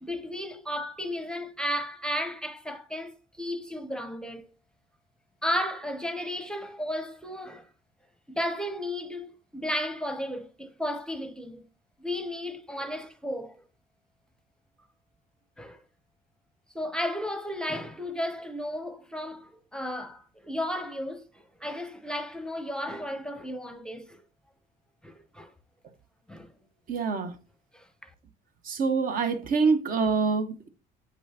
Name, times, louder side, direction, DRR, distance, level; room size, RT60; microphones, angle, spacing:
voice 1, 0.0-4.5 5.4-7.7 8.3-11.6 12.0-13.6 15.6-15.8 16.7-24.2 25.0-25.5 26.3-26.5 27.7-28.1, equal, 5° left, 0.7 m, -34 dB
voice 2, 26.9-27.3 28.6-30.7, right 4 dB, 55° right, 1.0 m, -25 dB
8.6 x 5.4 x 2.9 m
cardioid pair, 110°, 17 cm